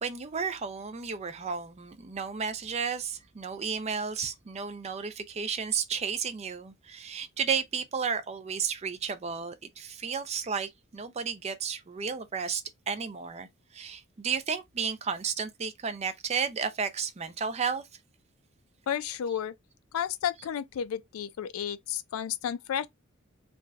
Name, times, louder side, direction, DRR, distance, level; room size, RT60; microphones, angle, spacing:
voice 1, 0.0-17.8, right 6 dB, 30° right, 0.4 m, -33 dB
voice 2, 18.9-19.5 19.9-22.9, left 9 dB, 80° left, 0.4 m, -32 dB
3.3 x 2.5 x 2.2 m
head